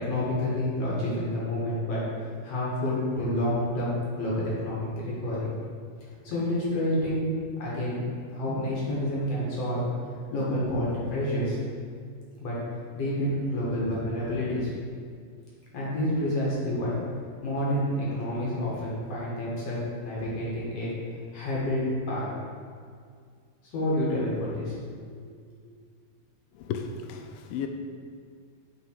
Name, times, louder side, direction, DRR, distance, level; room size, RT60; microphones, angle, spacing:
voice 1, 0.0-5.5 6.2-9.9 10.3-11.6 12.4-12.6 12.9-14.7 15.7-17.0 17.4-19.8 20.0-20.9 21.3-22.3 23.7-24.8, left 1 dB, 55° left, -6 dB, 2.1 m, -29 dB
voice 2, 26.6-27.7, left 7 dB, 80° left, 5 dB, 2.2 m, -34 dB
9.3 x 3.7 x 4.5 m, 2.1 s
omnidirectional pair, 4.3 m